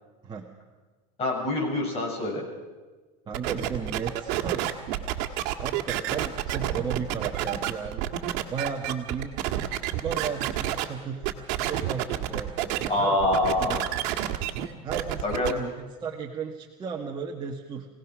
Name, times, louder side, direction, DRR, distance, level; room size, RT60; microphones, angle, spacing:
voice 1, 1.2-2.4 12.9-13.8 15.2-15.5, left 1 dB, 30° left, 0 dB, 6.8 m, -25 dB
voice 2, 3.3-4.8 5.5-8.1 8.5-9.3 10.0-11.3 11.7-13.3 13.6-13.9 14.8-17.9, right 6 dB, 20° right, -1 dB, 1.5 m, -35 dB
sound 1, 3.3-10.8 11.2-12.9 13.2-15.5, right 13 dB, 60° right, 1.8 m, -29 dB
25.0 x 17.5 x 6.2 m, 1.3 s
supercardioid pair, 150°, 21 cm